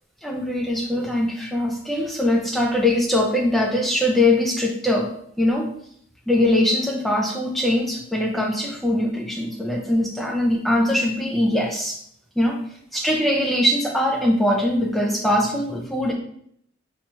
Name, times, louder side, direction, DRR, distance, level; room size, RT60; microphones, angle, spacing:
voice 1, 0.2-5.1 5.4-5.7 6.3-12.0 12.4-12.6 12.9-16.1, left 1 dB, ahead, 0 dB, 0.4 m, -22 dB
3.0 x 2.4 x 4.2 m, 0.68 s
head